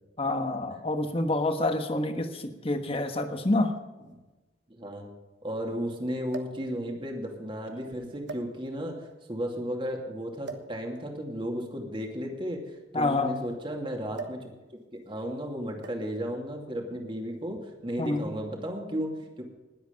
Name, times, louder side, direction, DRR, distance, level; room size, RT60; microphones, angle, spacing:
voice 1, 0.2-3.7 12.9-13.4 18.0-18.3, left 2 dB, 30° left, 7 dB, 1.3 m, -27 dB
sound 1, 2.6-2.7 3.8-3.9 4.1-4.2 6.3-6.7 7.5-7.7 8.2-8.9 10.4-10.8 11.9-13.5 14.1-14.5 14.8-15.1 15.8-16.2 17.2-17.4, right 4 dB, 85° right, 1.3 m, -42 dB
voice 2, 4.7-5.1 5.4-14.5 14.9-19.4, equal, 30° right, 2 dB, 2.6 m, -34 dB
20.5 x 8.2 x 5.3 m, 1.1 s
head